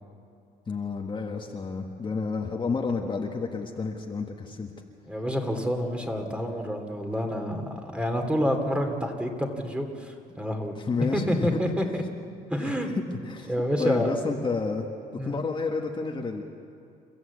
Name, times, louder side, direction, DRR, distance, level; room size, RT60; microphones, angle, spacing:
voice 1, 0.7-4.7 10.7-11.6 12.6-13.5 13.8-14.9 15.2-16.4, left 4 dB, 30° left, 1 dB, 1.6 m, -30 dB
voice 2, 5.1-10.8 11.1-12.0 12.5-12.9 13.5-14.1 15.2-15.3, equal, 5° right, 4 dB, 2.6 m, -28 dB
29.0 x 14.0 x 8.3 m, 2.5 s
cardioid pair, 110°, 17 cm